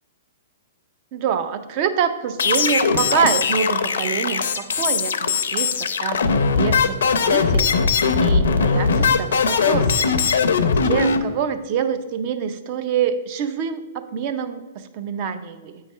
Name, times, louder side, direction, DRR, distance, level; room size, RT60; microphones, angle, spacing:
voice 1, 1.1-10.1 10.8-15.8, right 7 dB, 40° right, 10 dB, 0.5 m, -26 dB
sound 1, 2.4-11.2, left 5 dB, 85° left, 0.6 m, -20 dB
8.5 x 3.2 x 5.4 m, 1.2 s
hypercardioid pair, 150°, 0 cm